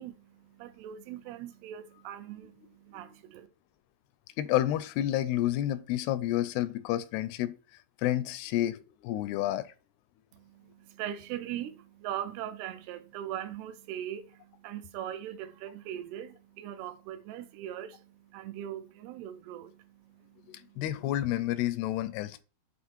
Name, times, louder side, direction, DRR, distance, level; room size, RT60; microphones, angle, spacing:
voice 1, 0.0-3.5 10.3-20.8, right 11 dB, 85° right, 2.7 m, -41 dB
voice 2, 4.4-7.6 8.0-9.7 20.5-22.4, left 13 dB, 85° left, 2.6 m, -30 dB
8.4 x 4.2 x 4.3 m
omnidirectional pair, 4.6 m